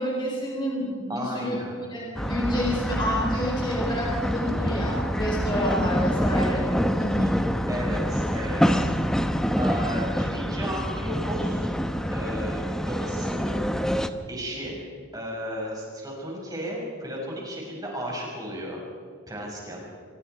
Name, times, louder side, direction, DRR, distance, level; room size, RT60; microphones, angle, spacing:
voice 1, 0.0-1.6 1.9-7.3 8.6-8.8, equal, 20° left, -3 dB, 4.3 m, -29 dB
voice 2, 1.1-1.8 7.7-8.9 9.6-11.7 12.1-13.6 14.3-14.8 15.1-18.8 19.3-19.9, equal, 20° right, -2 dB, 5.9 m, -34 dB
sound 1, 2.1-14.1, equal, 5° left, 0.8 m, -26 dB
26.0 x 22.5 x 4.7 m, 2.1 s
head